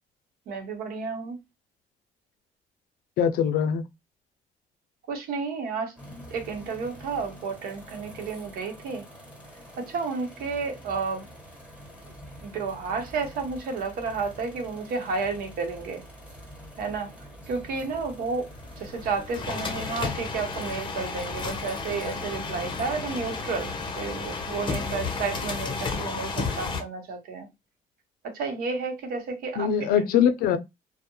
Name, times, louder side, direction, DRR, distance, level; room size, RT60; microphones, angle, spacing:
voice 1, 0.5-1.4 5.1-5.9 6.3-9.1 9.8-11.3 12.4-16.0 16.8-17.1 17.5-18.5 18.8-27.5 28.3-29.9, right 4 dB, 80° right, 0.8 m, -31 dB
voice 2, 3.2-3.8 29.6-30.6, left 8 dB, 75° left, 0.4 m, -22 dB
sound 1, 6.0-25.5, equal, 5° right, 1.2 m, -46 dB
sound 2, 18.6-26.8, left 4 dB, 30° left, 0.6 m, -32 dB
2.2 x 2.0 x 2.9 m
cardioid pair, 105°, 15 cm